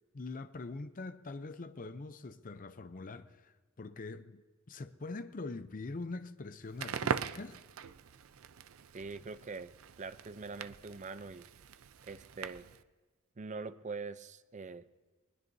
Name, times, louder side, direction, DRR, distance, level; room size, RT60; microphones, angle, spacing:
voice 1, 0.1-4.4 4.7-7.6, left 3 dB, 40° left, 0.6 m, -43 dB
Crackle, 6.7-12.8, right 6 dB, 80° right, 0.5 m, -41 dB
voice 2, 8.9-9.7 10.0-11.5 12.0-12.7 13.4-14.9, right 4 dB, 35° right, 0.5 m, -43 dB
20.5 x 20.5 x 2.7 m
head